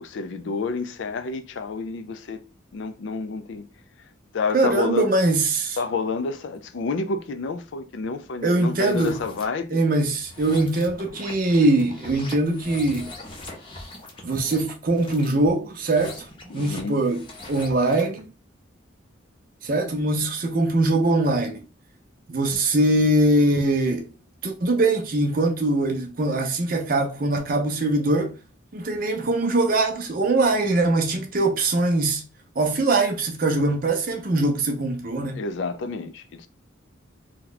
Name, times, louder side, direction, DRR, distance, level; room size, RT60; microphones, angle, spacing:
voice 1, 0.0-2.4 2.7-3.7 4.3-5.1 5.8-9.8 16.5-17.0 35.3-36.5, left 4 dB, 65° left, 0.4 m, -29 dB
voice 2, 4.5-5.8 8.4-9.2 9.7-13.1 14.2-16.2 16.5-18.3 19.6-21.6 22.3-24.1 24.4-28.4 28.7-32.2 32.6-35.4, right 2 dB, 45° right, 0.6 m, -22 dB
sound 1, 8.7-9.5 10.1-18.2, left 2 dB, 25° left, 0.6 m, -42 dB
2.8 x 2.2 x 3.9 m
head